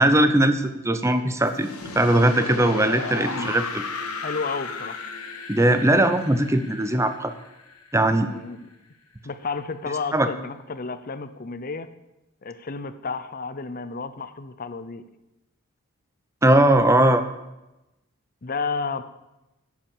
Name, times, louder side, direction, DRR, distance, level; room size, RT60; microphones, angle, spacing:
voice 1, 0.0-3.8 5.5-7.3 7.9-8.3 10.1-10.3 16.4-17.2, right 1 dB, 15° right, 9 dB, 0.6 m, -19 dB
sound 1, 1.5-8.4, left 4 dB, 85° left, 1.5 m, -35 dB
voice 2, 3.2-3.5 4.2-5.0 8.2-8.7 9.2-11.9 12.4-15.0 18.4-19.0, left 4 dB, 40° left, 12 dB, 0.6 m, -31 dB
9.9 x 8.4 x 7.2 m, 0.97 s
head